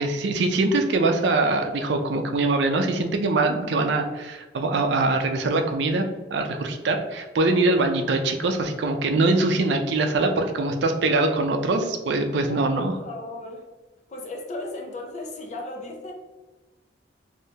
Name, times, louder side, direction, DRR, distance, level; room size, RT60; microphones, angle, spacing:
voice 1, 0.0-6.1 6.3-12.9, right 2 dB, 70° right, 5 dB, 0.4 m, -23 dB
voice 2, 12.7-13.6 14.1-16.1, left 2 dB, 40° left, 1 dB, 0.6 m, -36 dB
3.3 x 2.7 x 2.8 m, 1.2 s
head